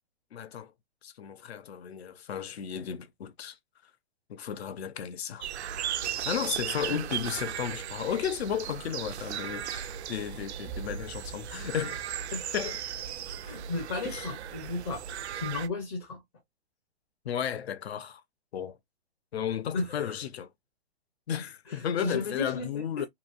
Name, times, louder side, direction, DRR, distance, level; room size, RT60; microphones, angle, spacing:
voice 1, 0.3-0.7 1.0-3.6 3.8-3.9 4.3-5.5 6.1-12.0 12.5-12.8 14.0-14.3 17.2-18.2 18.5-18.8 19.3-20.5 21.3-23.1, left 9 dB, 70° left, 0.7 m, -34 dB
sound 1, 5.4-15.7, right 9 dB, 85° right, 0.5 m, -36 dB
voice 2, 12.3-12.7 13.4-16.2 19.7-20.1 21.7-23.1, left 3 dB, 25° left, 0.6 m, -35 dB
2.9 x 2.7 x 2.3 m
hypercardioid pair, 160°, 33 cm